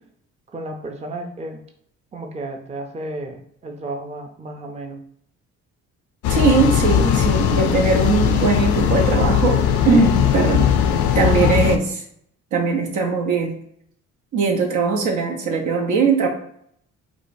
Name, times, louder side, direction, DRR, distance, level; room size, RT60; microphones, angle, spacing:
voice 1, 0.5-1.6 2.1-5.0, right 2 dB, 20° right, 3 dB, 0.5 m, -33 dB
sound 1, 6.2-11.8, left 9 dB, 75° left, 0.5 m, -19 dB
voice 2, 6.3-10.7 11.1-12.0 12.5-13.6 14.3-16.3, right 4 dB, 75° right, 1 dB, 0.9 m, -20 dB
4.8 x 2.2 x 2.6 m, 0.68 s
cardioid pair, 90°, 30 cm